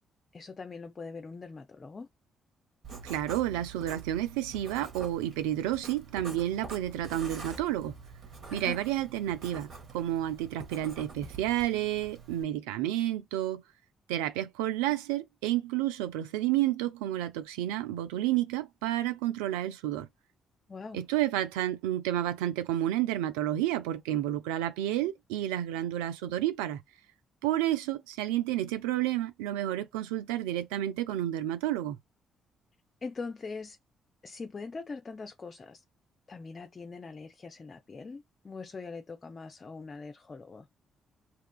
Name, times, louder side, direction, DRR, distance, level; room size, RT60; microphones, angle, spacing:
voice 1, 0.3-2.1 8.5-8.8 20.7-21.1 33.0-33.8 34.2-35.8 36.3-40.7, left 4 dB, 40° left, 0.4 m, -42 dB
Writing, 2.8-12.4, right 4 dB, 60° right, 1.2 m, -46 dB
voice 2, 3.0-7.9 8.5-13.6 14.1-20.1 20.9-26.8 27.4-32.0, right 13 dB, 80° right, 0.4 m, -30 dB
2.8 x 2.3 x 2.2 m
hypercardioid pair, 40°, 0 cm